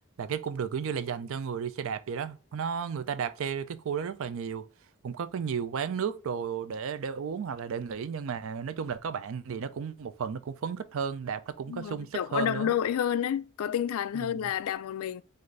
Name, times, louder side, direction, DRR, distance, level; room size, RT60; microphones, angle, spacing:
voice 1, 0.2-4.7 5.0-12.7 14.1-14.4, right 6 dB, 65° right, 0.4 m, -33 dB
voice 2, 11.7-15.2, left 9 dB, 85° left, 0.3 m, -30 dB
4.0 x 2.5 x 3.1 m
head